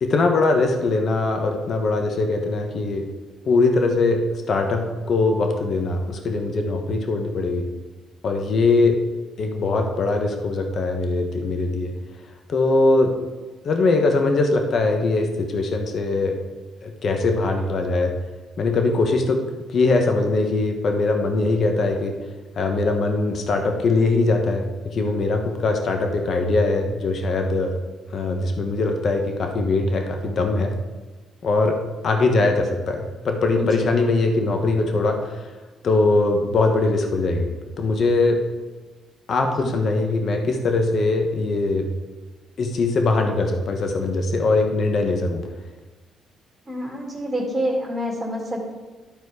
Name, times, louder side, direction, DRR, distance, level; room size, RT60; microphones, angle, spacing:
voice 1, 0.0-3.1 3.5-7.7 8.2-9.0 9.4-11.9 12.5-13.1 13.6-16.4 16.8-18.1 18.6-19.4 19.7-22.1 22.6-24.7 24.9-27.7 28.1-30.7 31.4-31.8 32.0-35.5 35.8-37.5 37.8-38.4 39.3-41.9 42.6-45.4, left 3 dB, 55° left, 4 dB, 1.2 m, -21 dB
voice 2, 46.7-48.7, equal, 15° right, -3 dB, 2.3 m, -27 dB
12.0 x 4.4 x 4.8 m, 1.3 s
cardioid pair, 90°, 0 cm